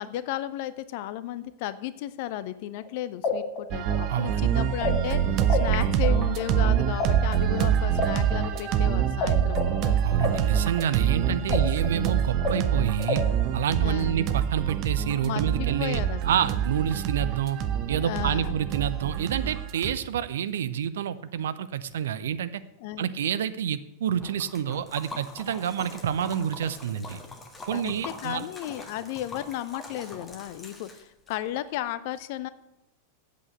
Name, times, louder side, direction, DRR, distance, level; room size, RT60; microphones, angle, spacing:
voice 1, 0.0-10.0 11.3-11.6 13.8-14.2 15.2-16.5 18.0-18.6 22.8-23.1 27.7-32.5, left 13 dB, 50° left, 14 dB, 0.7 m, -34 dB
sound 1, 2.8-2.9 3.2-5.7 6.0-9.3 9.5-13.4, left 4 dB, 30° left, 1.9 m, -30 dB
sound 2, 3.7-19.9, right 9 dB, 40° right, 0.9 m, -25 dB
voice 2, 4.1-4.4 10.0-13.2 13.5-17.6 17.9-22.6 23.0-27.2 27.7-28.4, right 9 dB, 60° right, 14 dB, 0.6 m, -28 dB
Liquid, 24.2-31.4, left 2 dB, 15° left, 1.6 m, -43 dB
8.3 x 8.1 x 7.9 m, 0.90 s
figure-of-eight pair, 90°, 0 cm